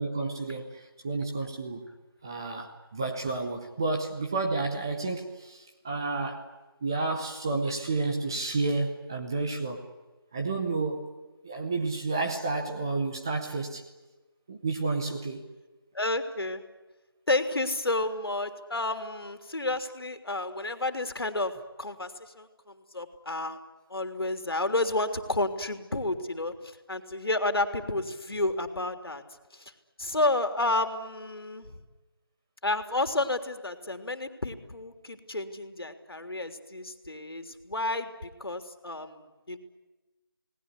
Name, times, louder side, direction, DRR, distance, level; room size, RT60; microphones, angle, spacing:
voice 1, 0.0-1.9 2.2-6.5 6.8-9.9 10.3-11.1 11.4-13.9 14.5-15.4, right 3 dB, 10° right, 2 dB, 0.8 m, -31 dB
voice 2, 15.9-16.6 17.3-21.5 21.8-23.6 23.9-29.2 29.5-29.7 30.0-31.7 32.6-39.6, left 2 dB, 75° left, 8 dB, 3.4 m, -31 dB
28.0 x 19.5 x 9.9 m, 1.2 s
figure-of-eight pair, 175°, 13 cm